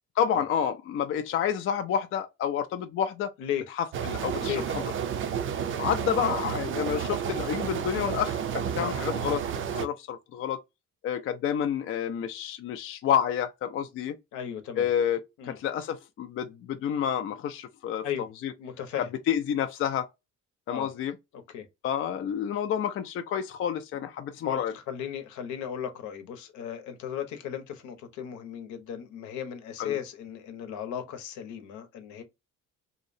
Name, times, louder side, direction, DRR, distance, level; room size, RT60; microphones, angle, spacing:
voice 1, 0.2-3.3 3.8-4.8 5.8-10.6 11.0-14.2 14.8-18.5 19.3-20.1 20.7-21.2 21.8-24.7 29.8-30.0, left 9 dB, 45° left, 0.4 m, -29 dB
sound 1, 3.9-9.9, right 8 dB, 45° right, 0.4 m, -31 dB
voice 2, 14.3-14.9 15.4-15.6 18.0-18.3 18.6-19.1 20.7-20.9 21.5-21.7 23.9-24.0 24.4-32.2, left 9 dB, 70° left, 0.8 m, -36 dB
2.8 x 2.0 x 2.5 m
cardioid pair, 105°, 30 cm